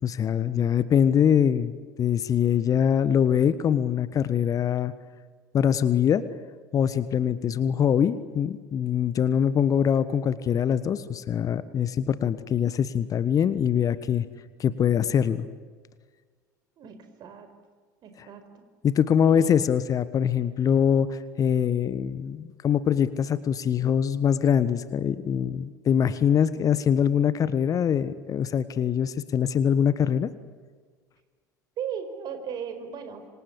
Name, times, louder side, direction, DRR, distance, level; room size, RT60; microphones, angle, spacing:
voice 1, 0.0-4.9 5.5-6.3 6.7-14.3 14.6-15.5 18.8-30.3, left 8 dB, 35° left, 15 dB, 1.4 m, -23 dB
voice 2, 16.8-17.5 18.0-18.6 19.3-19.6 31.8-33.3, right 7 dB, 45° right, 8 dB, 5.0 m, -37 dB
27.0 x 26.0 x 8.5 m, 1.5 s
figure-of-eight pair, 70°, 10 cm